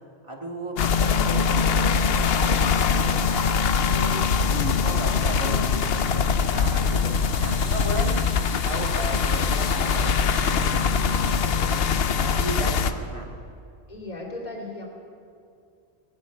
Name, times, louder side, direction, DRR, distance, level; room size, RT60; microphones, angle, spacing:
voice 1, 0.2-4.2 4.5-7.1 7.4-11.4 11.7-11.8 12.2-13.3, right 1 dB, 25° right, -1 dB, 2.0 m, -35 dB
sound 1, 0.8-12.9, left 6 dB, 65° left, 0.9 m, -22 dB
Keyboard (musical), 1.2-3.2, equal, 60° right, 2.4 m, -36 dB
sound 2, 4.0-4.2 4.4-4.6 4.9-11.8, equal, 5° right, 2.2 m, -43 dB
voice 2, 4.7-5.3 13.9-14.9, left 2 dB, 40° left, -2 dB, 2.8 m, -38 dB
21.0 x 7.3 x 8.7 m, 2.4 s
omnidirectional pair, 1.1 m